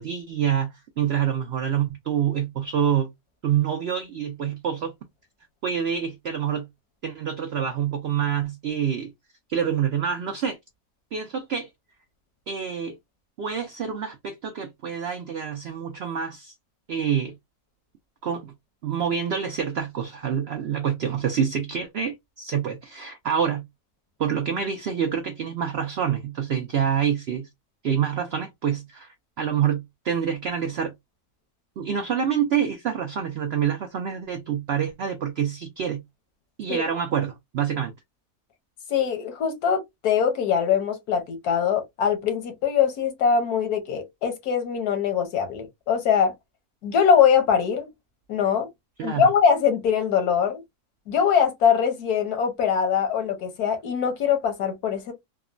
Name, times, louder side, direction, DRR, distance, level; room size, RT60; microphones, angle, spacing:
voice 1, 0.0-3.1 3.4-4.9 5.6-6.7 7.0-9.1 9.5-10.6 11.1-11.7 12.5-13.0 13.4-16.5 16.9-17.3 18.2-18.5 18.8-23.7 24.2-27.5 27.8-30.9 31.8-36.0 36.6-37.9 49.0-49.3, right 8 dB, 75° right, 0.5 m, -27 dB
voice 2, 38.9-46.3 46.8-47.9 48.3-48.7 49.0-50.6 51.1-55.1, left 7 dB, 85° left, 1.4 m, -22 dB
3.6 x 2.0 x 2.4 m
omnidirectional pair, 1.6 m